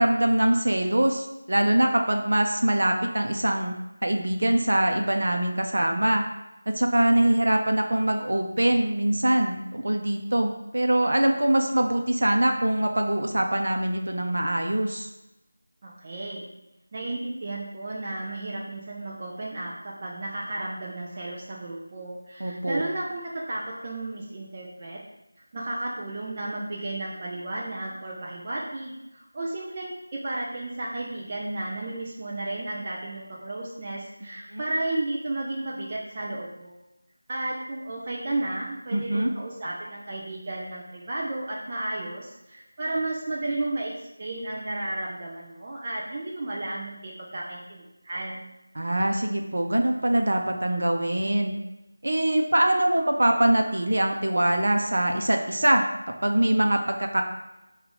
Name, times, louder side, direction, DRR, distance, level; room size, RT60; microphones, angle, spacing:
voice 1, 0.0-3.7 4.0-6.2 6.7-15.1 22.4-22.8 34.5-34.6 38.9-39.3 48.8-51.6 52.0-55.9 56.2-57.2, right 1 dB, 60° right, 3 dB, 0.7 m, -23 dB
voice 2, 15.8-16.5 16.9-25.0 25.5-36.8 37.3-48.4, right 2 dB, 20° right, -5 dB, 0.4 m, -33 dB
5.0 x 2.4 x 3.7 m, 0.96 s
figure-of-eight pair, 180°, 0 cm